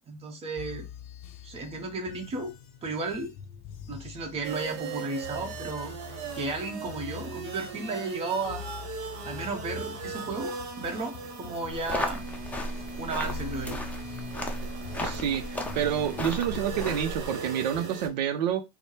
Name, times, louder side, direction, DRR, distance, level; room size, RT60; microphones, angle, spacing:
voice 1, 0.1-0.9 1.4-2.5 2.8-3.3 3.9-5.9 6.3-8.6 9.2-12.2 13.0-13.8, right 3 dB, 30° right, 1.0 m, -34 dB
sound 1, 0.6-17.8, left 9 dB, 45° left, 0.6 m, -45 dB
sound 2, 4.4-18.1, right 5 dB, 50° right, 1.1 m, -39 dB
sound 3, 11.7-17.3, left 1 dB, 5° left, 0.6 m, -35 dB
voice 2, 15.0-18.6, right 9 dB, 85° right, 0.5 m, -28 dB
4.1 x 2.1 x 3.2 m
supercardioid pair, 115°, 21 cm